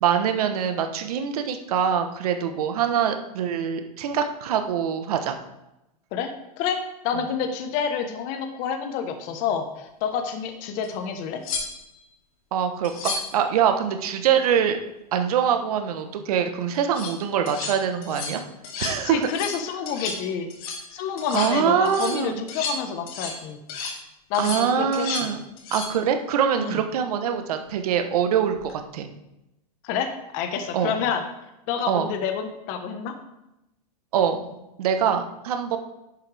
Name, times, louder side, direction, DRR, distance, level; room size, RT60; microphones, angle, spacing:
voice 1, 0.0-5.4 7.1-7.2 12.5-14.8 15.1-18.4 18.8-19.3 21.3-22.4 24.4-25.4 25.7-29.1 30.7-30.9 31.9-32.1 34.1-35.8, right 8 dB, 70° right, 7 dB, 1.1 m, -24 dB
voice 2, 6.6-11.4 19.0-20.5 20.9-23.6 24.3-25.3 26.6-26.8 29.8-31.2 31.7-33.1, left 7 dB, 45° left, 7 dB, 1.2 m, -28 dB
sound 1, 10.8-10.9 11.4-12.0 12.8-13.4 16.7-17.1 17.5-17.7 18.0-18.4 18.6-19.0 19.2-19.6 19.9-20.2 20.5-20.9 21.2-21.5 21.9-23.4 23.7-24.0 24.3-25.3 25.6-25.9 28.5-28.7, left 4 dB, 65° left, 2.7 m, -32 dB
11.0 x 7.8 x 3.4 m, 0.91 s
hypercardioid pair, 130°, 20 cm